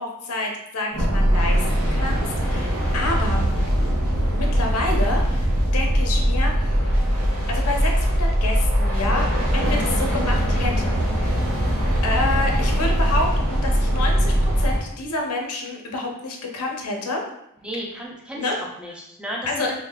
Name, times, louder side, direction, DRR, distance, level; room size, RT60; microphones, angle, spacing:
voice 1, 0.0-3.4 4.3-6.8 7.5-9.3 9.5-11.4 12.0-17.2 18.4-18.6 19.5-19.7, left 2 dB, 90° left, 1 dB, 0.7 m, -28 dB
sound 1, 0.9-14.8, equal, 75° right, 1.0 m, -21 dB
voice 2, 17.6-19.7, equal, 5° right, -2 dB, 0.5 m, -33 dB
3.6 x 3.2 x 2.3 m, 0.78 s
head